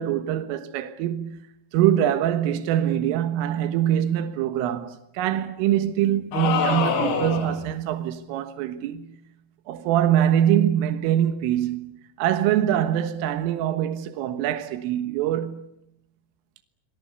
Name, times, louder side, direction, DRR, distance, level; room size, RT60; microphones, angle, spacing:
voice 1, 0.0-1.5 1.7-9.1 9.7-15.7, right 11 dB, 85° right, 4.0 m, -24 dB
sound 1, 6.3-7.7, left 6 dB, 70° left, 5.1 m, -25 dB
27.0 x 24.0 x 8.1 m
omnidirectional pair, 5.7 m